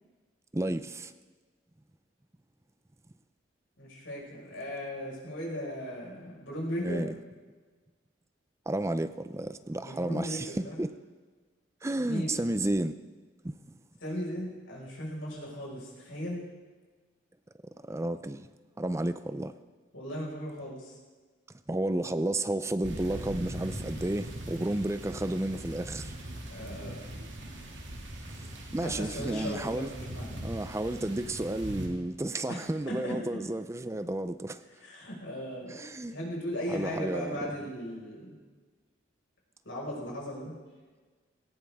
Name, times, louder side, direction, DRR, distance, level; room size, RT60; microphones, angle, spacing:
voice 1, 0.5-1.1 6.8-7.1 8.7-10.9 11.8-12.9 13.4-13.6 17.8-18.5 18.8-19.5 21.7-26.4 28.7-29.9 30.4-34.6 35.7-36.2 36.7-37.5, right 1 dB, 15° right, 12 dB, 0.4 m, -32 dB
voice 2, 3.8-7.1 9.7-10.8 12.0-12.3 14.0-16.4 19.9-21.0 26.5-27.1 28.8-30.4 32.5-33.1 34.8-35.8 36.1-38.3 39.7-40.5, equal, 85° left, -3 dB, 5.3 m, -37 dB
sound 1, 22.8-31.9, right 1 dB, 70° right, 2.5 m, -41 dB
18.0 x 16.0 x 3.6 m, 1.4 s
head